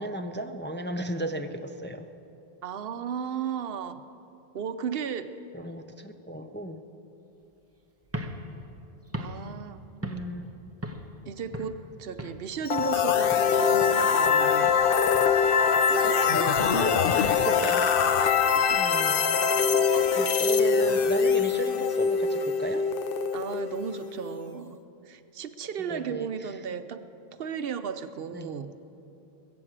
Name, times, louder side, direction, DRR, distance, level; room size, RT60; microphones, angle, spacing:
voice 1, 0.0-2.1 5.5-6.8 10.0-10.4 16.0-18.2 18.7-19.4 20.2-22.9 25.9-26.6 28.3-28.6, right 1 dB, 15° left, 6 dB, 0.4 m, -35 dB
voice 2, 2.6-4.0 4.5-5.3 9.2-9.8 11.3-14.7 15.9-16.3 16.8-17.1 18.2-18.8 19.9-20.1 23.3-24.8 25.1-27.0 27.4-28.7, right 7 dB, 70° right, 11 dB, 0.9 m, -35 dB
sound 1, 8.0-10.5 10.8-11.2 11.5-12.5 12.8-13.1 13.3-16.4, equal, 15° right, 0.9 m, -39 dB
sound 2, 12.7-24.5, left 6 dB, 65° left, 0.9 m, -23 dB
20.5 x 7.9 x 7.4 m, 2.8 s
omnidirectional pair, 1.0 m